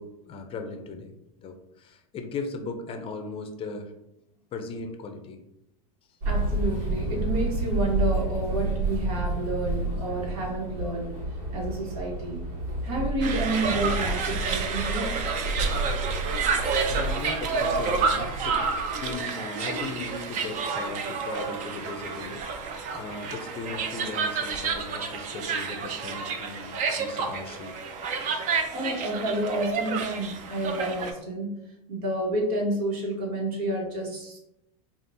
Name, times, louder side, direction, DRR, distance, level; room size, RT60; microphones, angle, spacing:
voice 1, 0.0-3.9 4.5-5.4 16.9-18.6 19.0-22.4 22.9-27.7, left 3 dB, 30° left, 5 dB, 0.5 m, -38 dB
voice 2, 6.2-11.2 11.5-12.4 12.8-15.2 28.7-31.5 31.9-34.4, right 1 dB, 70° right, -1 dB, 1.4 m, -30 dB
sound 1, 6.2-19.1, right 2 dB, 90° right, 1.3 m, -30 dB
sound 2, 13.2-31.1, right 5 dB, 40° right, 0.6 m, -30 dB
5.1 x 2.4 x 2.7 m, 0.84 s
supercardioid pair, 120°, 19 cm